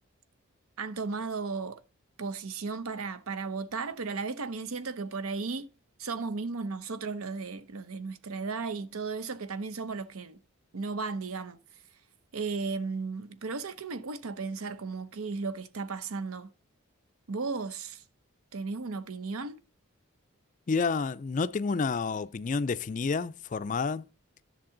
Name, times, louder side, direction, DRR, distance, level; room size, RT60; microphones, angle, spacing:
voice 1, 0.8-1.8 2.2-5.7 6.0-10.4 10.7-11.6 12.3-16.5 17.3-18.0 18.5-19.6, right 4 dB, 80° right, 0.7 m, -35 dB
voice 2, 20.7-24.1, left 4 dB, 35° left, 0.3 m, -29 dB
10.5 x 6.7 x 3.8 m
head